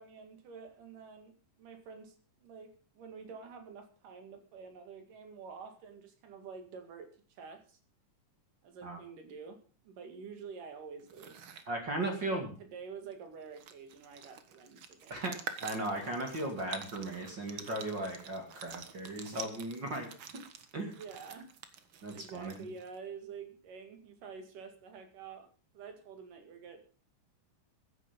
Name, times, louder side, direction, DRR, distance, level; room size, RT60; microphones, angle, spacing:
voice 1, 0.0-7.8 8.6-9.6 9.8-11.5 12.2-15.2 20.9-21.5 22.1-25.5 25.7-26.8, right 5 dB, 75° right, 6 dB, 3.7 m, -48 dB
sound 1, 11.0-11.7 13.1-13.2 13.4-23.0, right 7 dB, 55° right, 1.4 m, -48 dB
voice 2, 11.7-12.5 15.1-15.3 15.6-20.1 20.7-20.9 22.0-22.6, right 1 dB, 35° right, 3 dB, 2.7 m, -36 dB
15.5 x 10.5 x 5.3 m, 0.39 s
omnidirectional pair, 3.8 m